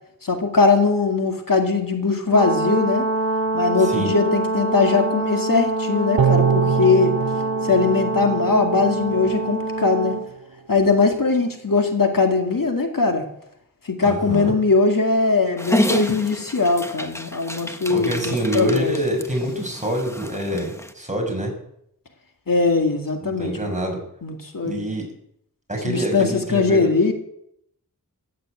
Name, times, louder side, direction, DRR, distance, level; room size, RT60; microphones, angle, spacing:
voice 1, 0.2-3.0 3.5-7.2 7.6-10.2 10.7-13.3 13.9-18.9 22.5-23.7 24.2-24.9 25.8-27.1, left 4 dB, 70° left, 3 dB, 2.2 m, -20 dB
Brass instrument, 2.3-10.3, right 3 dB, 40° right, 2.2 m, -25 dB
voice 2, 3.8-4.1 14.0-14.5 17.9-21.5 23.2-24.0 24.6-25.1 25.7-26.9, right 1 dB, 20° right, 1 dB, 6.2 m, -26 dB
sound 1, 6.2-9.5 9.9-10.0, right 7 dB, 80° right, 0.9 m, -24 dB
Dog, 15.6-20.9, left 1 dB, 10° left, 1.2 m, -29 dB
15.0 x 10.0 x 8.1 m, 0.73 s
wide cardioid pair, 75°, 35 cm